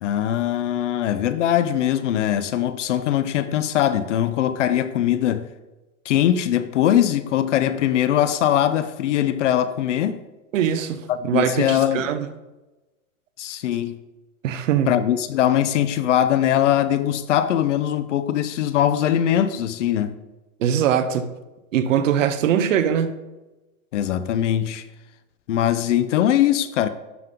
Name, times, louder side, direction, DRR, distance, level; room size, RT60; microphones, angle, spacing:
voice 1, 0.0-5.5 6.1-10.2 11.1-12.1 13.4-14.0 14.9-20.2 23.9-24.8 25.5-26.9, left 11 dB, 55° left, 0.6 m, -21 dB
voice 2, 10.5-12.3 14.4-15.0 20.6-21.3 21.7-23.2, right 9 dB, 60° right, 0.9 m, -22 dB
12.0 x 5.4 x 3.7 m
hypercardioid pair, 160°, 44 cm